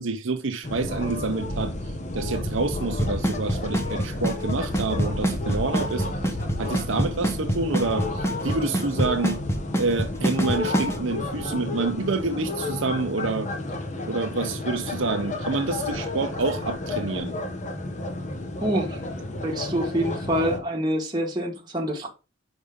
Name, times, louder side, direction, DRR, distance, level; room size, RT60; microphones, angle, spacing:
voice 1, 0.0-1.7 2.1-6.0 6.6-9.4 9.8-13.5 14.1-17.3, right 3 dB, 70° right, 0.7 m, -27 dB
sound 1, 0.6-20.6, left 2 dB, 35° left, 1.1 m, -31 dB
Drum kit / Snare drum / Bass drum, 3.0-11.0, right 1 dB, 15° left, 0.9 m, -24 dB
voice 2, 18.6-19.0 19.4-22.1, equal, 20° right, 1.8 m, -26 dB
5.3 x 5.0 x 3.6 m
head